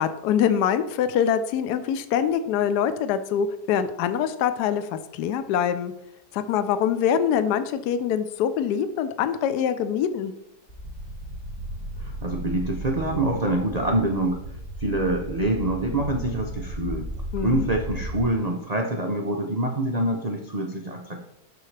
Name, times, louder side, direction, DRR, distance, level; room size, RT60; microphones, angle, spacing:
voice 1, 0.0-5.9 6.3-10.3 17.3-17.7, left 8 dB, 75° left, 11 dB, 1.1 m, -24 dB
sound 1, 10.7-18.3, equal, 50° left, 3.6 m, -35 dB
voice 2, 12.0-14.4 14.8-17.1 17.4-21.2, right 1 dB, 85° right, 2 dB, 0.3 m, -25 dB
12.0 x 4.7 x 3.2 m, 0.81 s
omnidirectional pair, 1.8 m